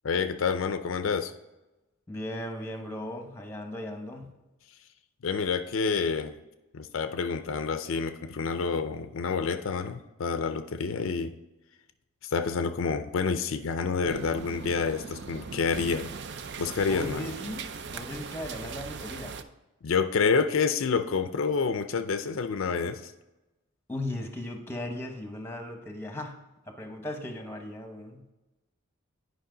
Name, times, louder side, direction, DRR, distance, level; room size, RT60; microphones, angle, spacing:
voice 1, 0.0-1.3 5.2-6.4 6.7-11.3 12.3-16.1 16.6-17.3 19.8-23.1, left 5 dB, 70° left, 9 dB, 0.5 m, -28 dB
voice 2, 2.1-4.3 16.7-19.4 23.9-26.4 26.7-28.2, left 1 dB, 10° left, 4 dB, 0.9 m, -37 dB
sound 1, 14.0-19.4, right 5 dB, 55° right, 0.5 m, -39 dB
10.0 x 5.1 x 3.8 m, 1.0 s
head